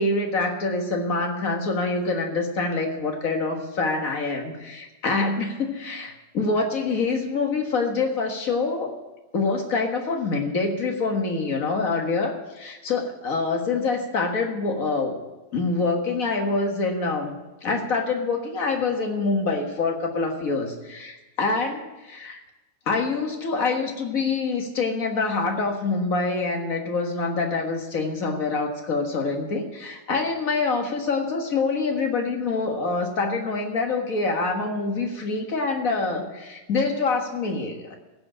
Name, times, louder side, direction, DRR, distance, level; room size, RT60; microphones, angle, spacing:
voice 1, 0.0-8.9 9.3-15.2 15.5-17.3 17.6-22.4 22.9-37.9, left 3 dB, 50° left, 3 dB, 2.0 m, -25 dB
15.5 x 5.3 x 8.7 m, 1.1 s
omnidirectional pair, 1.9 m